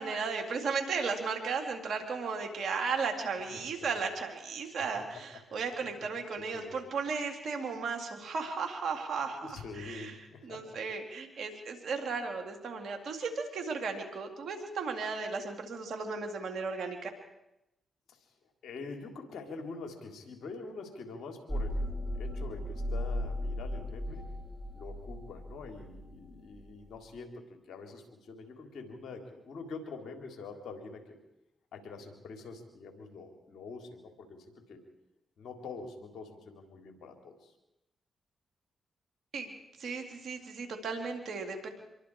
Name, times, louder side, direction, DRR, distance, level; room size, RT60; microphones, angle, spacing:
voice 1, 0.0-9.4 9.8-10.1 10.4-17.1 39.3-39.5 39.8-41.7, right 5 dB, 70° right, 4 dB, 3.7 m, -35 dB
voice 2, 3.3-3.7 4.8-5.4 6.0-6.1 6.4-6.8 9.4-10.8 18.1-18.3 18.6-24.4 24.7-31.2 31.7-34.8 35.4-37.5, left 4 dB, 75° left, 3 dB, 3.8 m, -45 dB
sound 1, 21.5-26.9, left 1 dB, 5° right, 5.9 m, -36 dB
26.5 x 22.5 x 5.0 m, 0.88 s
supercardioid pair, 50°, 0 cm